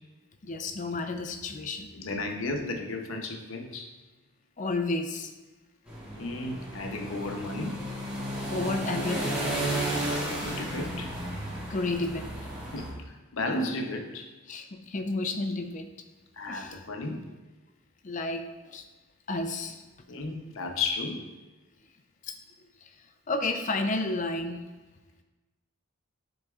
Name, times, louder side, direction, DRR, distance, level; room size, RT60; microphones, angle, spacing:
voice 1, 0.4-1.9 4.6-5.3 8.5-9.4 11.7-12.3 14.5-15.9 16.5-16.8 18.0-18.8 19.3-19.8 22.2-22.3 22.8-22.9 23.3-24.6, left 2 dB, 35° left, 6 dB, 0.5 m, -31 dB
voice 2, 1.9-3.9 6.2-7.8 9.9-11.1 12.7-14.3 16.3-17.3 20.1-21.3, left 2 dB, 75° left, 3 dB, 0.8 m, -34 dB
sound 1, 5.9-12.9, right 1 dB, 5° right, 1.9 m, -33 dB
9.9 x 4.0 x 2.4 m, 1.2 s
head